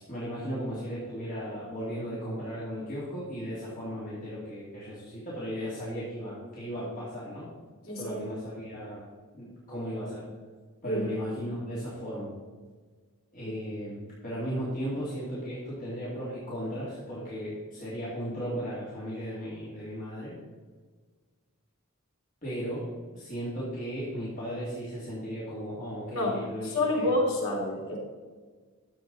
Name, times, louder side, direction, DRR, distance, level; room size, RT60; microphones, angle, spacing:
voice 1, 0.1-7.5 7.9-9.1 9.3-10.3 10.8-12.3 13.3-20.3 22.4-22.9 23.1-27.1, equal, 40° left, -8 dB, 2.8 m, -36 dB
voice 2, 7.8-8.2 10.8-11.1 26.1-28.0, left 1 dB, 70° left, -2 dB, 3.4 m, -28 dB
12.5 x 7.8 x 4.1 m, 1.5 s
head